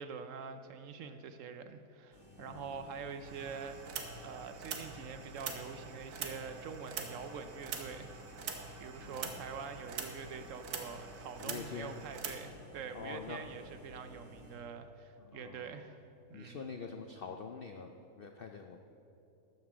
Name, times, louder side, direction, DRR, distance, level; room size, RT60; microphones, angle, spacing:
voice 1, 0.0-3.9 4.2-8.5 8.8-16.0 16.3-16.7, right 6 dB, 65° right, 9 dB, 0.9 m, -45 dB
sound 1, 2.1-14.6, right 1 dB, 90° left, 3.5 m, -55 dB
voice 2, 2.4-2.7 9.0-9.4 11.4-11.9 12.9-13.4 15.2-15.9 16.3-18.8, left 5 dB, 70° left, 5 dB, 0.5 m, -46 dB
sound 2, 3.2-12.4, right 5 dB, 85° right, 1.6 m, -44 dB
12.5 x 7.3 x 6.1 m, 2.9 s
omnidirectional pair, 1.6 m